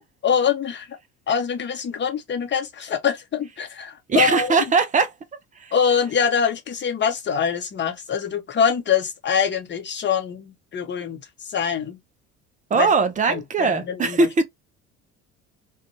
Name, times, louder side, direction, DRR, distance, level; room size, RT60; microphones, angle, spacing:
voice 1, 0.2-1.0 1.3-4.7 5.7-12.0 12.7-12.9 13.3-14.3, left 7 dB, 25° left, 0.8 m, -24 dB
voice 2, 4.1-5.1 12.7-14.4, right 4 dB, 20° right, 0.5 m, -20 dB
2.5 x 2.2 x 2.7 m
figure-of-eight pair, 60°, 40 cm